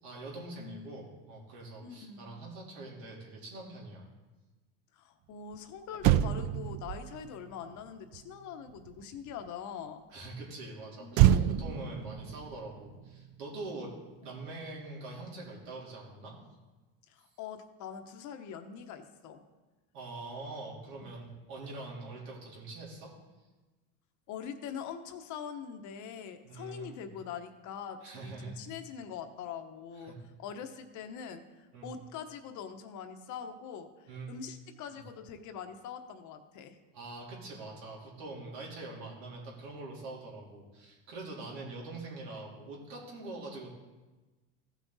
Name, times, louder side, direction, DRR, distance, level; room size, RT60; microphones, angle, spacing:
voice 1, 0.0-4.1 10.1-13.9 14.2-16.4 19.9-23.1 26.4-27.1 28.0-28.6 30.0-30.2 31.7-31.9 34.1-34.3 34.9-35.0 36.9-43.7, right 2 dB, 85° right, -4 dB, 3.5 m, -44 dB
voice 2, 0.6-1.1 1.8-2.3 4.9-10.0 11.0-11.6 14.2-14.4 17.1-19.4 21.0-21.2 24.3-30.1 30.4-36.8, left 7 dB, 50° left, 7 dB, 1.0 m, -43 dB
Motor vehicle (road), 5.5-5.6 5.9-9.5 11.1-13.7 14.0-14.2, right 12 dB, 50° right, 0.4 m, -29 dB
15.5 x 6.1 x 4.0 m, 1.2 s
supercardioid pair, 125°, 37 cm